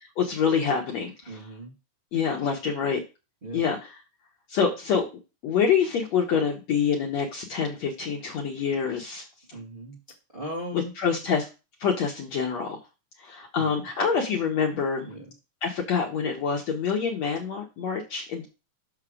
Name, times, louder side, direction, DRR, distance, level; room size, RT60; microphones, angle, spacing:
voice 1, 0.2-1.4 2.1-3.0 3.5-4.0 4.5-5.1 5.4-9.2 10.7-11.5 11.8-12.8 13.2-15.1 15.6-18.5, left 6 dB, 65° left, 0 dB, 1.9 m, -26 dB
voice 2, 1.3-1.7 3.4-3.7 9.5-10.0 10.3-10.9 13.6-13.9 15.0-15.3, right 1 dB, 65° right, -3 dB, 0.5 m, -38 dB
6.6 x 5.8 x 4.9 m, 0.29 s
omnidirectional pair, 4.3 m